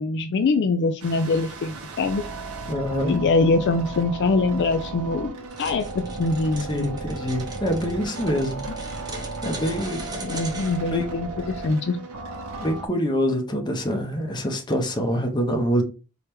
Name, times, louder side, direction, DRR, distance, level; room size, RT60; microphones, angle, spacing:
voice 1, 0.0-2.2 3.1-7.0 10.2-12.0, left 3 dB, 55° left, 0.3 m, -23 dB
sound 1, 1.0-12.9, right 3 dB, 80° right, 0.8 m, -35 dB
voice 2, 2.7-3.1 6.7-8.6 9.4-10.3 10.9-11.1 12.6-15.8, equal, 20° left, 0.6 m, -25 dB
sound 2, 5.5-10.8, right 2 dB, 20° right, 0.7 m, -39 dB
4.5 x 2.2 x 3.3 m
head